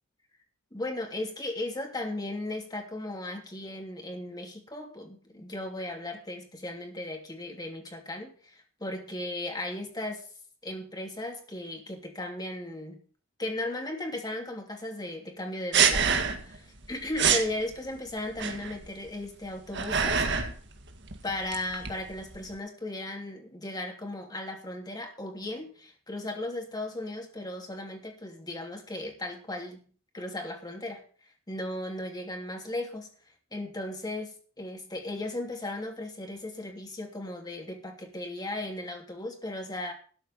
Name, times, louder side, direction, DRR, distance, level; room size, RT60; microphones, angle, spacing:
voice 1, 0.7-10.3 10.6-13.0 13.4-20.2 21.2-29.9 30.1-31.0 31.5-33.1 33.5-39.9, left 1 dB, 20° left, 2 dB, 2.9 m, -36 dB
sound 1, 15.7-16.6 16.8-16.9 17.1-17.5 18.4-18.9 19.5-20.6 20.9-22.5, right 6 dB, 60° right, 1.8 m, -26 dB
13.0 x 5.7 x 8.7 m, 0.42 s
head